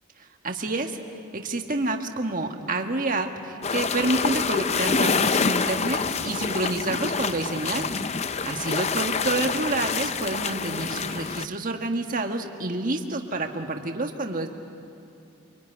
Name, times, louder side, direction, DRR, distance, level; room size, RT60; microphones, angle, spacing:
voice 1, 0.4-1.0 1.3-14.5, right 2 dB, 40° right, 4 dB, 1.6 m, -28 dB
sound 1, 3.6-11.5, left 5 dB, 30° left, 0.6 m, -27 dB
25.5 x 23.5 x 9.8 m, 2.7 s
head